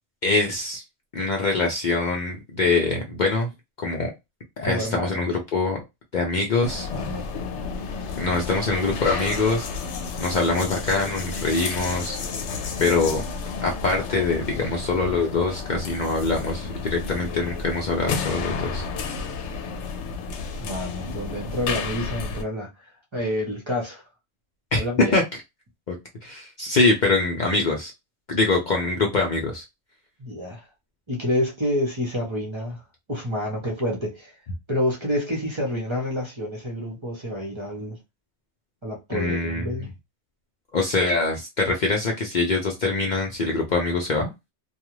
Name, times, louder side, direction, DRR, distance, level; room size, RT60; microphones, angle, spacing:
voice 1, 0.2-0.8 1.1-3.5 3.8-4.1 4.6-5.8 6.1-6.9 8.2-9.7 10.2-12.2 12.8-13.2 13.6-18.9 24.7-24.8 25.1-25.2 25.9-26.0 26.2-27.9 28.3-29.6 39.1-39.7 40.7-44.3, left 3 dB, 50° left, 0.6 m, -24 dB
voice 2, 4.7-5.2 6.9-7.5 20.6-22.7 23.1-24.0 24.8-25.2 30.2-30.7 31.1-32.8 33.1-34.3 34.7-38.0 38.8-39.9, left 1 dB, 30° right, 0.8 m, -28 dB
sound 1, 6.6-22.4, left 4 dB, 90° left, 0.9 m, -31 dB
2.4 x 2.3 x 3.0 m
omnidirectional pair, 1.2 m